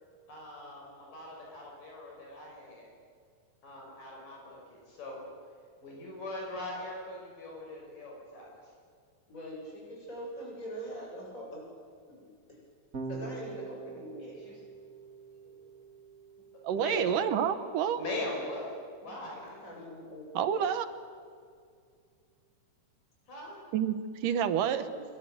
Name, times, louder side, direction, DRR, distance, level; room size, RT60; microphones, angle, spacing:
voice 1, 0.3-2.9 3.6-5.3 5.8-8.5 14.4-14.6 16.7-17.2 17.9-19.4 23.3-23.6, left 2 dB, 65° left, -1 dB, 7.0 m, -40 dB
voice 2, 9.3-11.6 12.1-12.3 13.1-14.4 15.4-15.5 19.0-19.1 19.4-20.7 24.9-25.0, equal, 20° left, -2 dB, 8.4 m, -43 dB
Electric guitar / Bass guitar, 12.9-19.3, right 4 dB, 30° right, 2.1 m, -46 dB
voice 3, 16.6-18.0 20.3-20.9 23.7-24.9, right 9 dB, 70° right, 11 dB, 2.7 m, -28 dB
27.5 x 24.0 x 7.8 m, 2.1 s
omnidirectional pair, 4.2 m